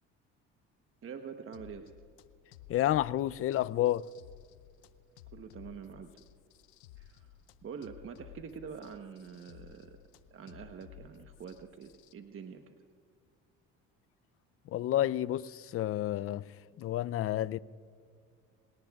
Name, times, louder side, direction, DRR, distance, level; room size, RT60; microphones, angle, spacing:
voice 1, 1.0-1.9 5.3-6.2 7.0-7.3 7.6-10.0 10.3-12.7, right 6 dB, 40° right, 1.1 m, -45 dB
sound 1, 1.5-12.1, left 12 dB, 85° left, 0.7 m, -55 dB
voice 2, 2.7-4.1 14.7-17.6, left 13 dB, 45° left, 0.5 m, -30 dB
27.0 x 18.0 x 2.4 m
supercardioid pair, 80°, 32 cm